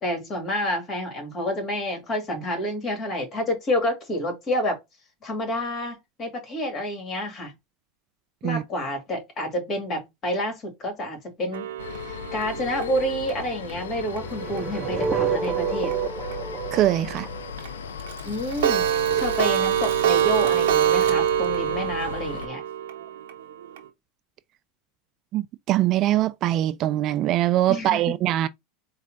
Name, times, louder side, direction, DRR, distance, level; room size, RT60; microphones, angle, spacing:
voice 1, 0.0-4.8 5.2-7.5 8.4-11.7 12.1-16.0 18.2-22.6 27.7-28.2, left 1 dB, 35° left, 2.2 m, -29 dB
Clock, 11.5-14.6 15.0-15.1 15.4-15.5 15.9-16.0 16.3-16.4 16.8-16.9 17.2-17.3 17.6-17.7 18.0-23.8, right 11 dB, 80° right, 0.7 m, -25 dB
sound 1, 11.8-22.5, left 7 dB, 90° left, 0.5 m, -37 dB
sound 2, 14.1-18.2, right 6 dB, 30° right, 0.7 m, -29 dB
voice 2, 16.7-17.3 25.3-28.5, right 13 dB, 50° right, 0.3 m, -22 dB
4.2 x 2.4 x 3.8 m
hypercardioid pair, 100°, 0 cm